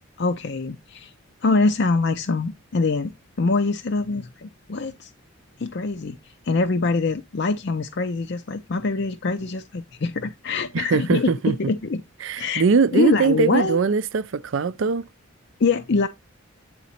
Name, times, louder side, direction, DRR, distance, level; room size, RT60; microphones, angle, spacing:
voice 1, 0.2-1.1 1.4-5.1 5.6-12.0 12.4-12.6 12.9-13.8 15.6-16.1, left 3 dB, 55° left, 0.5 m, -24 dB
voice 2, 10.7-11.6 12.2-15.0, right 5 dB, 65° right, 0.4 m, -21 dB
8.6 x 4.0 x 4.2 m
head